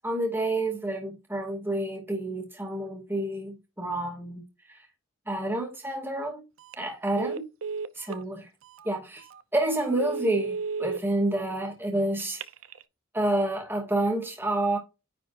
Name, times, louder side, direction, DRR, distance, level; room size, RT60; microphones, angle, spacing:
voice 1, 0.0-4.4 5.3-6.4 6.8-7.5 8.0-8.5 8.8-9.2 9.5-12.4 13.1-14.8, right 1 dB, 10° right, 2.4 m, -29 dB
Telephone, 6.6-6.8 7.2-8.2 8.8-8.9 9.3-9.4 9.9-11.0 12.2-12.8, right 5 dB, 80° right, 0.7 m, -33 dB
10.0 x 4.4 x 2.6 m
head